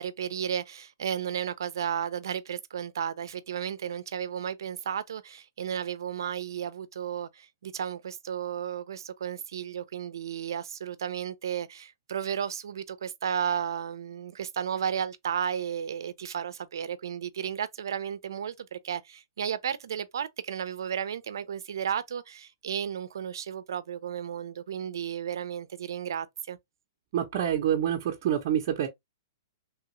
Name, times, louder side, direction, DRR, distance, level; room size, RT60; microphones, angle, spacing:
voice 1, 0.0-26.6, right 8 dB, 80° right, 0.5 m, -33 dB
voice 2, 27.1-28.9, right 10 dB, 40° right, 0.7 m, -27 dB
3.3 x 2.3 x 2.9 m
hypercardioid pair, 165°, 2 cm